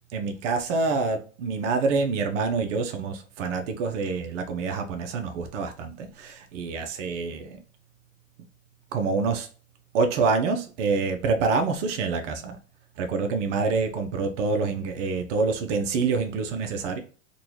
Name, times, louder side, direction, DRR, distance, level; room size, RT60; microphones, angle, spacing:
voice 1, 0.1-7.6 8.9-9.5 9.9-12.6 13.0-17.0, right 4 dB, 70° right, 5 dB, 0.7 m, -26 dB
3.8 x 2.3 x 2.9 m, 0.40 s
hypercardioid pair, 105°, 37 cm